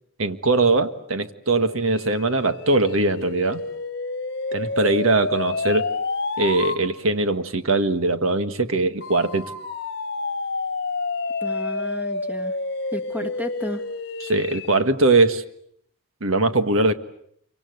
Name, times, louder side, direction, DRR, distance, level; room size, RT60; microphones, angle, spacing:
voice 1, 0.2-3.6 4.5-5.9 6.4-9.5 13.2-13.3 14.3-15.4 16.2-16.9, right 2 dB, 85° right, 9 dB, 1.7 m, -21 dB
sound 1, 1.6-6.8 9.0-14.9, left 3 dB, 50° left, 1.3 m, -29 dB
voice 2, 11.4-12.5 12.9-13.8, equal, 10° right, 7 dB, 1.8 m, -32 dB
29.0 x 25.0 x 7.9 m, 0.69 s
head